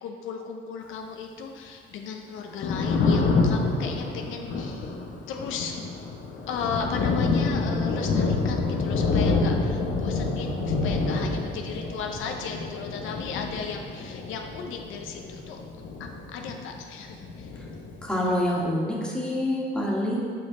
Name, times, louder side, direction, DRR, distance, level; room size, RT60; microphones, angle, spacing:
voice 1, 0.0-5.0 5.3-5.7 6.5-15.6 16.0-17.5, left 5 dB, 85° left, 3 dB, 0.7 m, -36 dB
Thunder, 2.4-16.8 17.1-18.4, left 3 dB, 65° left, 1.0 m, -27 dB
voice 2, 18.0-20.2, left 1 dB, 5° left, -5 dB, 1.7 m, -26 dB
7.7 x 5.3 x 3.9 m, 2.2 s
cardioid pair, 90°, 20 cm